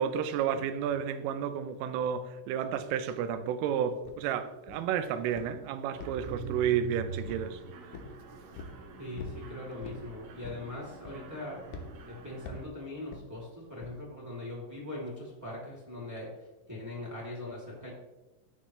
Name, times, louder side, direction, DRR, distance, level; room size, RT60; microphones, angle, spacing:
voice 1, 0.0-7.6, right 8 dB, 90° right, 3.3 m, -31 dB
sound 1, 4.1-4.2 4.7-5.0 5.4-5.6 6.0-6.9 7.2-7.5 7.9-8.2 8.6-8.8 9.2-9.4 9.8-10.1 10.4-10.7 11.0-11.4 11.7-11.9 12.5-12.7 13.1-13.3 13.8-14.0, left 3 dB, 85° left, 2.0 m, -44 dB
Mechanisms, 5.9-12.7, right 5 dB, 75° right, 2.2 m, -44 dB
voice 2, 9.0-11.6 12.0-16.3 16.7-17.9, left 1 dB, 5° right, 1.6 m, -41 dB
16.0 x 5.5 x 3.2 m
omnidirectional pair, 5.6 m